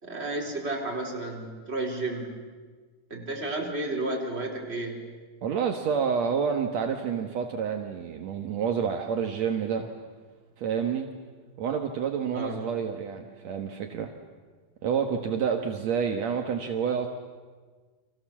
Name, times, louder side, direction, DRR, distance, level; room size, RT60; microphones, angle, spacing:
voice 1, 0.0-2.3 3.1-5.0 12.3-12.6, right 2 dB, 15° right, 0 dB, 3.9 m, -32 dB
voice 2, 5.4-9.9 10.6-11.1 11.6-14.1 14.8-17.1, right 7 dB, 70° right, 4 dB, 1.7 m, -28 dB
30.0 x 25.5 x 7.4 m, 1.5 s
omnidirectional pair, 5.1 m